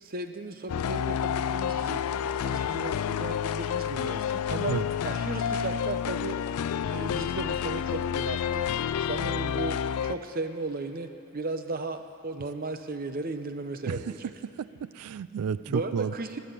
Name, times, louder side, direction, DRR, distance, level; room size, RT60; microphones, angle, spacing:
voice 1, 0.0-6.4 6.9-8.7 9.0-14.3 15.7-16.4, right 2 dB, 40° right, 8 dB, 0.7 m, -35 dB
sound 1, 0.7-10.2, left 8 dB, 80° left, 0.4 m, -29 dB
voice 2, 14.4-16.1, right 7 dB, 80° right, 16 dB, 0.3 m, -31 dB
16.5 x 9.5 x 8.8 m, 2.8 s
head